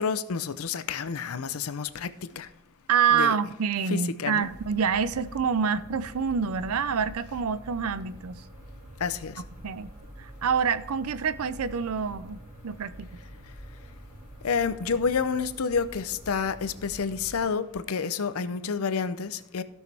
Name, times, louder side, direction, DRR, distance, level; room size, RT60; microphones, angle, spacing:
voice 1, 0.0-2.1 2.4-2.5 3.1-3.3 3.9-4.5 9.0-9.4 14.4-19.6, left 5 dB, 75° left, 0.6 m, -29 dB
voice 2, 2.9-8.3 9.6-9.9 10.2-13.1, right 6 dB, 80° right, 0.5 m, -27 dB
sound 1, 4.4-17.4, equal, 40° right, 3.6 m, -46 dB
15.5 x 6.3 x 3.4 m
head